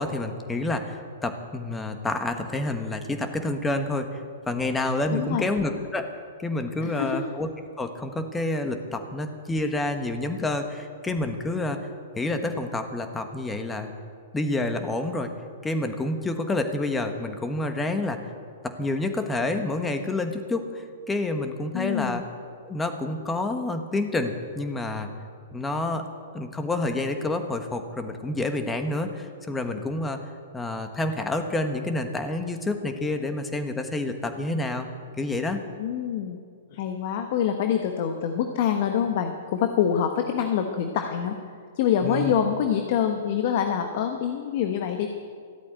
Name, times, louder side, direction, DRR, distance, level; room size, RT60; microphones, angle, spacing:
voice 1, 0.0-4.2 4.5-6.1 6.4-7.5 7.8-11.8 12.2-13.9 14.3-15.3 15.6-18.2 18.6-22.2 22.6-25.1 25.5-26.0 26.3-30.2 30.5-34.9 35.2-35.6 42.0-42.3, left 2 dB, 10° left, 6 dB, 1.4 m, -28 dB
voice 2, 5.1-5.5 6.8-7.2 21.7-22.2 35.8-36.4 36.7-41.4 41.8-45.1, left 8 dB, 55° left, 5 dB, 1.1 m, -25 dB
14.0 x 8.5 x 9.1 m, 2.2 s
hypercardioid pair, 125°, 0 cm